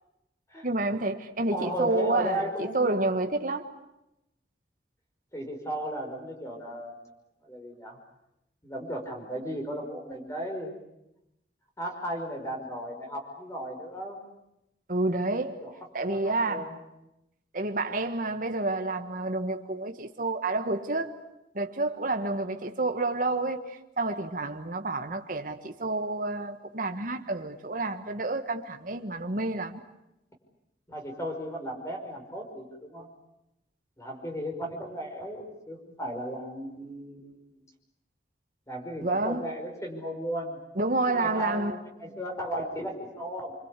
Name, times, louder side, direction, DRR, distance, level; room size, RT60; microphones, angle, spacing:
voice 1, 0.6-3.7 14.9-15.7 15.9-16.8 17.5-21.2 21.5-29.8 39.0-39.5 40.7-41.7 42.1-42.2, right 2 dB, 50° right, 1.6 m, -29 dB
voice 2, 1.5-2.8 5.3-6.9 7.4-8.0 8.6-10.8 11.8-14.2 15.6-15.7 16.0-16.8 30.9-33.1 34.0-37.6 38.7-40.6 41.1-43.5, equal, 15° left, 5.6 m, -35 dB
27.0 x 25.0 x 8.4 m
head